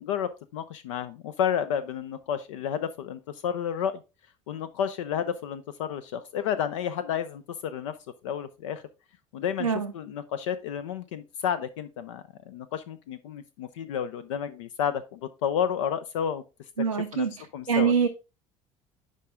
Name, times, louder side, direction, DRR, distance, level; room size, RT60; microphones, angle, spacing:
voice 1, 0.0-4.0 4.5-8.0 8.2-8.8 9.3-16.4 16.9-17.3 17.5-17.9, left 8 dB, 65° left, 0.5 m, -31 dB
voice 2, 9.6-9.9 16.8-17.3 17.7-18.1, right 6 dB, 90° right, 0.5 m, -24 dB
10.5 x 3.7 x 3.6 m
figure-of-eight pair, 60°, 17 cm